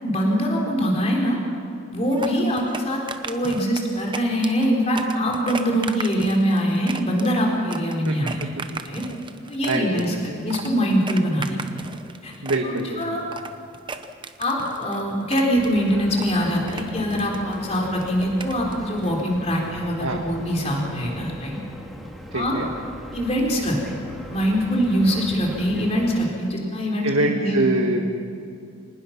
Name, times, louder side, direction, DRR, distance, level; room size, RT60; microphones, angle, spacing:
voice 1, 0.0-1.4 1.9-8.4 8.8-9.0 9.5-11.9 12.2-12.3 12.6-13.2 14.4-21.6 22.3-22.6 23.1-24.0 24.3-27.1 27.4-28.1, equal, 30° left, -1 dB, 3.9 m, -23 dB
sound 1, 2.0-19.2, right 4 dB, 20° right, 0.8 m, -37 dB
voice 2, 8.1-8.8 9.7-10.4 12.4-13.2 20.0-20.2 22.3-22.7 27.0-28.1, right 2 dB, 75° right, 1 dB, 1.7 m, -25 dB
sound 2, 15.5-26.3, equal, ahead, 1.9 m, -39 dB
25.5 x 19.5 x 5.9 m, 2.5 s
head